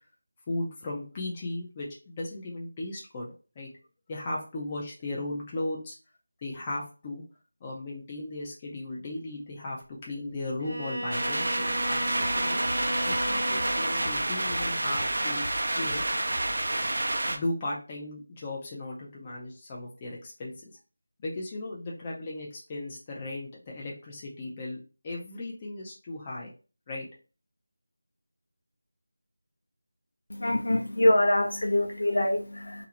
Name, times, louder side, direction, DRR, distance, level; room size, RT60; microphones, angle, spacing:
voice 1, 0.5-3.7 4.1-6.0 6.4-7.2 7.6-12.6 13.0-15.4 15.8-16.0 17.3-20.5 21.2-24.8 25.0-26.5 26.9-27.1, left 2 dB, 20° left, 0.4 m, -36 dB
Bowed string instrument, 10.6-14.3, equal, 45° right, 0.8 m, -34 dB
sound 1, 11.1-17.4, right 1 dB, 70° right, 0.4 m, -29 dB
sound 2, 11.9-16.9, equal, 35° left, 0.8 m, -45 dB
voice 2, 30.3-32.9, left 1 dB, 70° left, 0.6 m, -24 dB
2.4 x 2.0 x 2.8 m
figure-of-eight pair, 170°, 0 cm